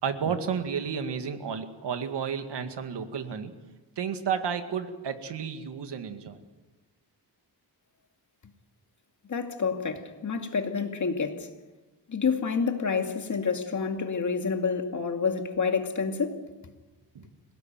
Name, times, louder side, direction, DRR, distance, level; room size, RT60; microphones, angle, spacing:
voice 1, 0.0-3.5 4.0-6.4 17.1-17.2, right 7 dB, 75° right, 2.2 m, -32 dB
voice 2, 9.3-11.5 12.1-16.4, left 5 dB, 45° left, 2.3 m, -28 dB
26.5 x 18.0 x 9.1 m
wide cardioid pair, 135°, 42 cm